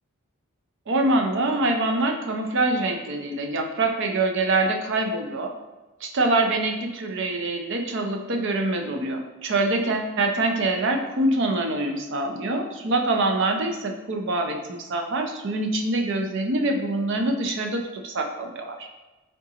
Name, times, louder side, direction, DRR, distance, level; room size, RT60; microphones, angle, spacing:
voice 1, 0.9-5.5 6.0-18.9, right 2 dB, 55° right, 3 dB, 0.5 m, -25 dB
3.8 x 3.5 x 2.8 m, 1.1 s
head